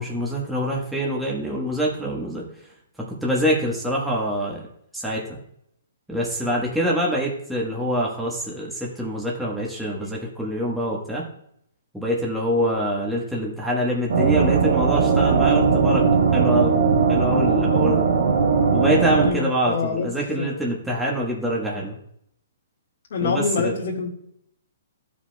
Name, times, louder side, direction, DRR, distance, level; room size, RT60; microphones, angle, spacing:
voice 1, 0.0-2.4 3.0-4.7 4.9-5.4 6.1-11.2 11.9-16.8 17.1-18.1 18.7-22.0 23.2-23.7, equal, ahead, -5 dB, 1.2 m, -25 dB
sound 1, 14.1-19.3, right 5 dB, 70° right, 1.2 m, -19 dB
voice 2, 19.2-20.1 20.4-20.5 23.1-24.1, left 4 dB, 60° left, -3 dB, 1.8 m, -25 dB
13.0 x 5.1 x 2.3 m, 0.72 s
hypercardioid pair, 145°, 0 cm